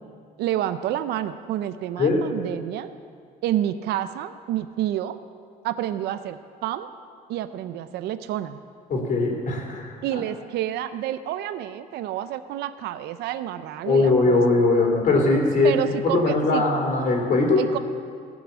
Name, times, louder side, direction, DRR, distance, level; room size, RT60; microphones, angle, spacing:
voice 1, 0.4-2.9 3.4-5.2 5.6-6.9 7.3-8.6 10.0-14.4 15.6-16.6 17.6-17.8, right 12 dB, 75° right, 11 dB, 0.5 m, -29 dB
voice 2, 8.9-10.2 13.8-17.6, left 3 dB, 55° left, 1 dB, 3.1 m, -21 dB
16.0 x 6.3 x 8.3 m, 2.1 s
cardioid pair, 110°, 17 cm